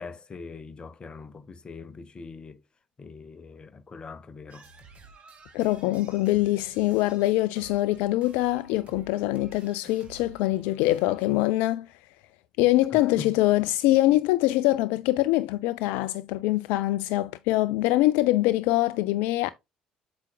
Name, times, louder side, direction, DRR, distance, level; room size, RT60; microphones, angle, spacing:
voice 1, 0.0-2.6 3.0-4.7 12.9-13.3, left 4 dB, 30° left, 0.8 m, -42 dB
sound 1, 4.5-11.4, right 4 dB, 40° right, 2.0 m, -52 dB
voice 2, 5.5-11.9 12.6-19.5, left 17 dB, 60° left, 0.4 m, -24 dB
8.1 x 6.0 x 2.2 m
figure-of-eight pair, 55°, 3 cm